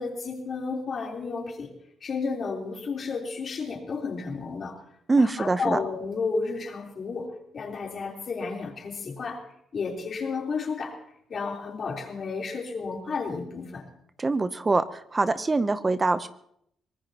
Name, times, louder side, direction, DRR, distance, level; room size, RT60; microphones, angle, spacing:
voice 1, 0.0-1.7 2.0-4.8 5.2-9.4 9.7-11.0 11.3-13.8, left 4 dB, 50° left, 0 dB, 3.7 m, -32 dB
voice 2, 5.1-5.8 14.2-16.3, right 3 dB, 25° right, 12 dB, 0.7 m, -24 dB
24.0 x 19.0 x 2.9 m, 0.72 s
cardioid pair, 90°, 0 cm